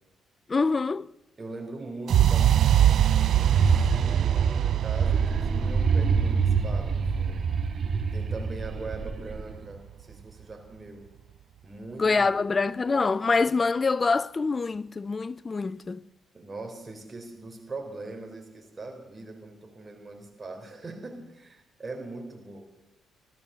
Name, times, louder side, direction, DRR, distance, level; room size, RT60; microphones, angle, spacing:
voice 1, 0.5-1.1 12.0-16.0, left 4 dB, 30° left, 0.5 m, -25 dB
voice 2, 1.4-7.5 8.1-11.1 11.6-12.4 16.3-22.6, right 3 dB, 25° right, 4.1 m, -41 dB
sound 1, 2.1-10.0, right 11 dB, 65° right, 0.5 m, -25 dB
sound 2, 3.3-9.6, right 5 dB, 45° right, 1.7 m, -26 dB
16.0 x 12.5 x 6.9 m
cardioid pair, 90°, 0 cm